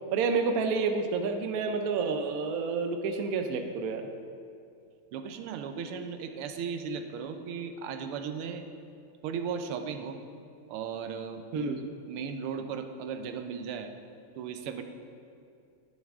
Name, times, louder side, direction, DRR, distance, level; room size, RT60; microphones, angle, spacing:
voice 1, 0.1-4.1 11.5-11.8, right 4 dB, 70° right, 5 dB, 0.9 m, -29 dB
voice 2, 5.1-8.7 9.2-10.2 10.7-11.7 12.1-13.9 14.4-14.8, right 6 dB, 90° right, 7 dB, 1.6 m, -36 dB
10.5 x 10.0 x 3.6 m, 2.4 s
omnidirectional pair, 2.4 m